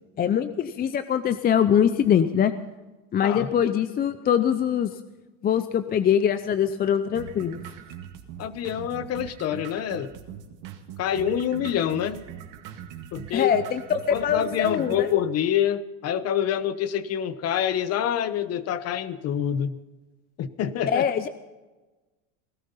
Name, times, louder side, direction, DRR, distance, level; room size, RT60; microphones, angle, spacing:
voice 1, 0.2-2.5 3.1-4.9 5.4-7.6 13.3-15.1 20.9-21.3, left 8 dB, 25° left, 11 dB, 0.6 m, -23 dB
voice 2, 3.2-3.7 8.4-10.1 11.0-12.2 13.1-13.5 14.1-19.7 20.4-21.0, left 9 dB, 40° left, 15 dB, 1.0 m, -26 dB
sound 1, 7.1-15.1, right 9 dB, 55° right, 2.1 m, -41 dB
18.0 x 13.0 x 5.6 m, 1.2 s
supercardioid pair, 115°, 38 cm